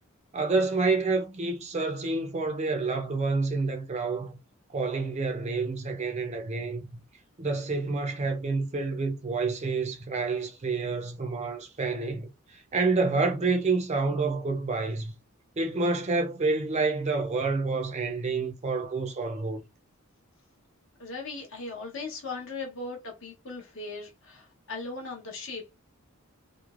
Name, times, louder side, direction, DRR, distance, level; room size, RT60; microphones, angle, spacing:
voice 1, 0.3-4.3 4.7-7.0 7.4-15.1 15.6-19.6, right 3 dB, 30° right, 0.4 m, -28 dB
voice 2, 21.0-25.7, left 3 dB, 60° left, 0.9 m, -38 dB
3.1 x 2.0 x 2.4 m
head